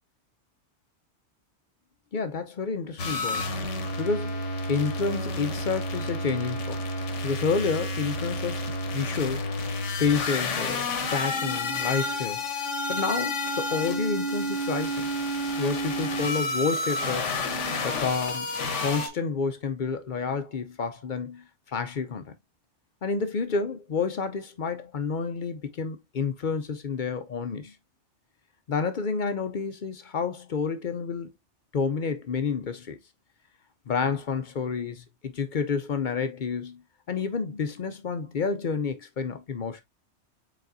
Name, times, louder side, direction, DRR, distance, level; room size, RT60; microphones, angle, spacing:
voice 1, 2.1-3.5 4.0-6.9 7.2-9.5 10.0-12.4 12.9-15.1 15.6-17.3 17.8-18.5 18.8-21.4 21.7-22.4 23.0-27.7 28.7-31.3 31.7-33.0 33.9-36.8 37.1-39.8, left 5 dB, 50° left, 0.6 m, -29 dB
sound 1, 3.0-19.1, left 1 dB, 85° left, 1.3 m, -30 dB
5.1 x 4.0 x 2.6 m
omnidirectional pair, 1.2 m